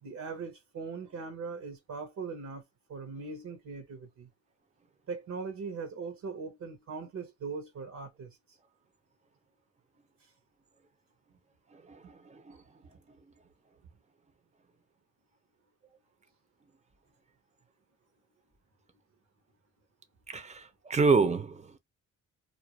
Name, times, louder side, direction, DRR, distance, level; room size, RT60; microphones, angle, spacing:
voice 1, 0.0-2.6 2.9-4.3 5.1-8.4, right 4 dB, 65° right, 1.1 m, -40 dB
voice 2, 11.7-12.6 20.3-21.8, right 4 dB, 20° right, 0.7 m, -28 dB
2.6 x 2.1 x 3.0 m
supercardioid pair, 65°, 31 cm